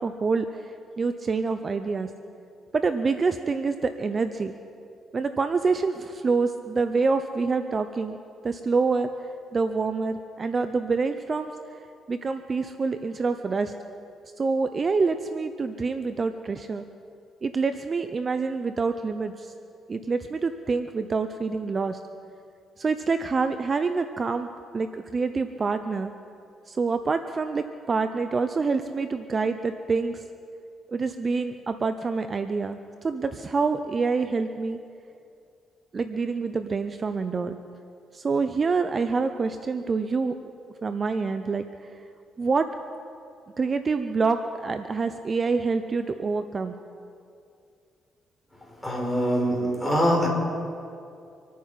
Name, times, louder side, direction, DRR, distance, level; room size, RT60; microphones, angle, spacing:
voice 1, 0.0-2.1 2.7-4.5 5.1-8.2 8.4-9.1 9.5-11.5 12.1-13.7 14.4-16.8 17.4-19.5 19.9-22.0 22.8-24.5 24.7-26.1 26.7-30.2 30.9-34.8 35.9-37.6 38.1-40.5 40.8-41.6 42.4-42.7 43.6-46.7, right 4 dB, 35° right, 9 dB, 0.6 m, -26 dB
voice 2, 48.8-50.3, equal, 10° left, -2 dB, 5.2 m, -23 dB
25.5 x 9.4 x 5.8 m, 2.5 s
cardioid pair, 90°, 0 cm